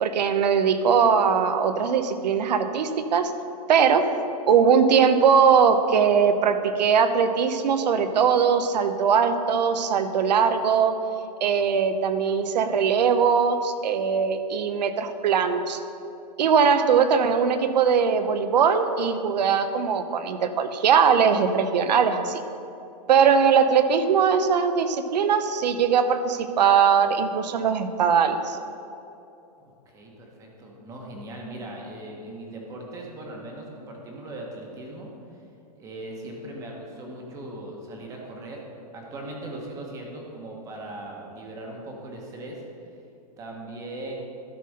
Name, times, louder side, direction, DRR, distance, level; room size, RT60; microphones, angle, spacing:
voice 1, 0.0-3.3 3.7-4.1 4.4-11.0 11.4-15.8 16.4-22.4 23.1-28.6, right 6 dB, 80° right, 9 dB, 0.8 m, -21 dB
voice 2, 29.6-35.1 35.8-38.6 38.9-42.6 43.4-44.1, right 1 dB, 15° right, 0 dB, 1.1 m, -39 dB
12.5 x 4.2 x 6.4 m, 2.8 s
supercardioid pair, 170°, 21 cm